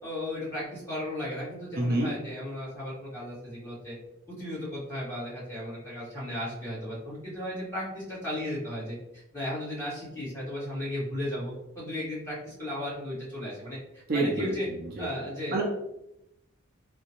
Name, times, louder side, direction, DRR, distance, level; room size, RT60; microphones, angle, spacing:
voice 1, 0.0-4.0 4.3-14.7 15.0-15.6, left 1 dB, 15° left, -9 dB, 1.3 m, -35 dB
voice 2, 1.8-2.1 14.1-15.1 15.5-15.6, right 2 dB, 45° right, -2 dB, 0.5 m, -28 dB
3.7 x 2.2 x 2.9 m, 0.84 s
head